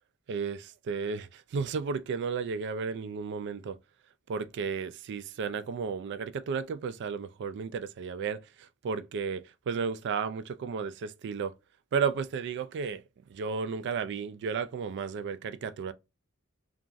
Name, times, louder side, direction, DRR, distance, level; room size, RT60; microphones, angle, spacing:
voice 1, 0.3-3.8 4.3-11.5 11.9-13.0 13.3-15.9, right 5 dB, 55° right, 0.3 m, -33 dB
2.9 x 2.3 x 2.5 m
head